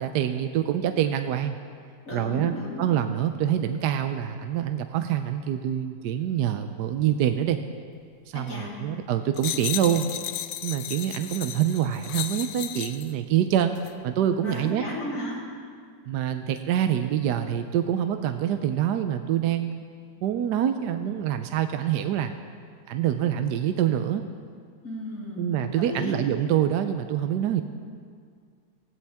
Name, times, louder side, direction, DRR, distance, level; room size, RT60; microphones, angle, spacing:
voice 1, 0.0-1.6 2.1-7.6 8.3-10.1 10.6-13.8 14.0-14.8 16.1-19.7 20.2-22.3 22.9-24.2 25.4-27.6, right 10 dB, 75° right, 8 dB, 1.2 m, -25 dB
voice 2, 2.1-2.9 8.5-8.7 14.4-15.4 24.8-25.5 25.7-26.2, left 1 dB, 45° left, -7 dB, 4.2 m, -34 dB
sound 1, 9.4-13.1 13.8-13.9, left 12 dB, 80° left, 1.3 m, -34 dB
19.5 x 15.5 x 3.5 m, 2.1 s
omnidirectional pair, 1.9 m